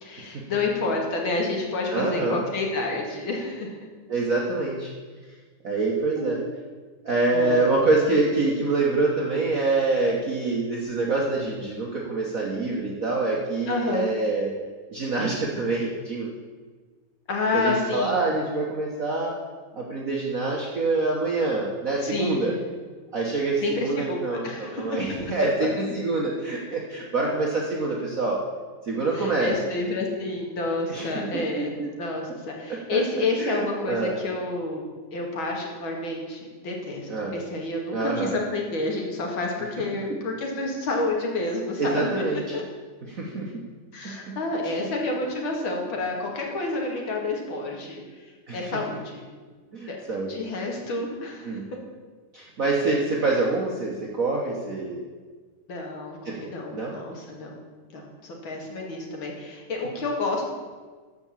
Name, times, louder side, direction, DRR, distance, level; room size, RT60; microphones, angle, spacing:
voice 1, 0.0-3.8 6.2-6.5 7.3-7.8 13.7-14.1 17.3-18.2 22.0-22.6 23.6-25.0 29.1-31.7 32.0-34.8 35.1-42.2 42.5-42.6 43.9-49.2 49.9-50.0 50.3-51.6 55.7-57.6 57.9-60.5, left 2 dB, 65° left, 0 dB, 2.7 m, -29 dB
voice 2, 1.9-2.4 4.1-4.9 5.6-6.4 7.0-14.5 14.9-16.3 17.5-19.4 19.7-22.5 23.1-28.4 28.8-29.5 30.9-31.9 32.9-33.0 33.4-34.2 37.1-37.4 37.9-38.4 40.1-40.2 41.8-42.4 43.1-43.5 44.0-44.3 44.6-44.9 48.5-48.7 49.7-50.3 51.4-51.6 52.3-55.0 56.2-56.4 56.7-56.9, right 3 dB, 45° right, -3 dB, 1.4 m, -26 dB
13.5 x 5.2 x 7.3 m, 1.4 s
omnidirectional pair, 2.4 m